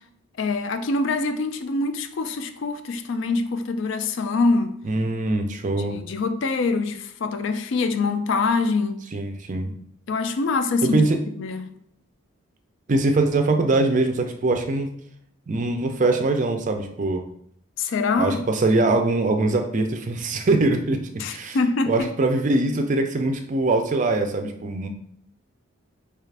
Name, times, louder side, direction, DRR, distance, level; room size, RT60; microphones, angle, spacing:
voice 1, 0.4-4.8 5.8-9.0 10.1-11.0 11.4-11.8 17.8-18.4 21.2-22.1, left 3 dB, 60° left, 0.3 m, -24 dB
voice 2, 4.8-6.0 9.1-9.7 10.8-11.2 12.9-14.9 15.5-17.2 18.2-21.6 21.9-24.9, right 2 dB, 35° right, 0.4 m, -22 dB
4.7 x 2.4 x 3.3 m
head